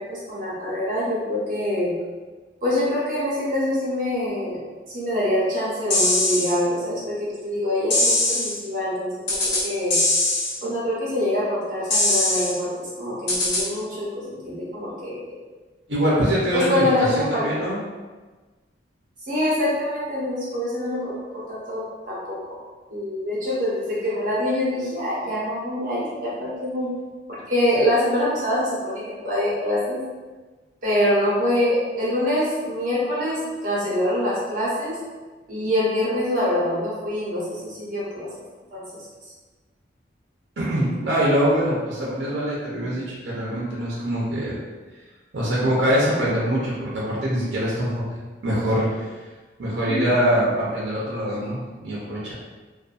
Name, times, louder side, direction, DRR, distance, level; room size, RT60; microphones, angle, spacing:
voice 1, 0.0-1.9 2.6-4.6 4.9-10.0 10.6-15.4 16.5-17.4 19.3-21.1 21.5-21.8 22.1-22.6 22.9-26.9 27.3-30.0 30.8-35.0 35.5-38.3 38.7-39.0 49.9-50.1, left 1 dB, 45° right, -7 dB, 0.9 m, -25 dB
sound 1, 5.9-6.5 7.9-8.5 9.3-9.6 9.9-10.5 11.9-12.5 13.3-13.6, left 2 dB, 75° left, 1.0 m, -21 dB
voice 2, 15.9-16.8 17.2-17.8 40.6-44.6 45.3-47.9 48.4-49.1 49.6-52.3, equal, 70° right, -6 dB, 0.6 m, -23 dB
2.5 x 2.3 x 2.4 m, 1.3 s
head